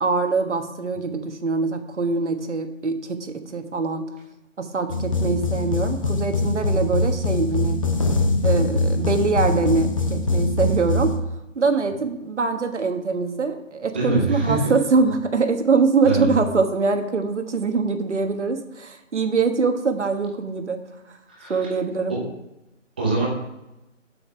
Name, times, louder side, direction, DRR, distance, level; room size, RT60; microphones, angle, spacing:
voice 1, 0.0-4.1 4.6-7.8 8.4-11.1 11.5-20.8 21.5-22.1, right 4 dB, 65° right, 6 dB, 1.5 m, -23 dB
sound 1, 4.9-11.2, left 2 dB, 25° left, 0.7 m, -23 dB
voice 2, 13.9-14.6 16.0-16.3 21.4-21.6 23.0-23.3, right 3 dB, 10° right, -4 dB, 0.8 m, -23 dB
8.0 x 7.1 x 5.6 m, 0.93 s
figure-of-eight pair, 160°, 38 cm